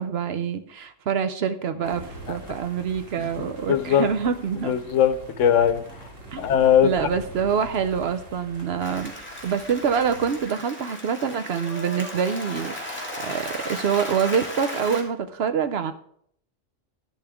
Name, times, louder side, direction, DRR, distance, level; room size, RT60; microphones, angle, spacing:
voice 1, 0.0-4.8 6.3-6.5 6.8-9.1 9.4-15.9, right 7 dB, 60° right, 10 dB, 0.8 m, -26 dB
sound 1, 1.8-10.4, right 2 dB, 75° right, 2.8 m, -43 dB
voice 2, 3.7-4.1 4.6-5.8 6.4-6.9, left 9 dB, 75° left, 12 dB, 1.0 m, -19 dB
Applause, 8.8-15.0, left 1 dB, 10° left, 1.7 m, -36 dB
11.5 x 10.5 x 3.5 m, 0.67 s
omnidirectional pair, 1.3 m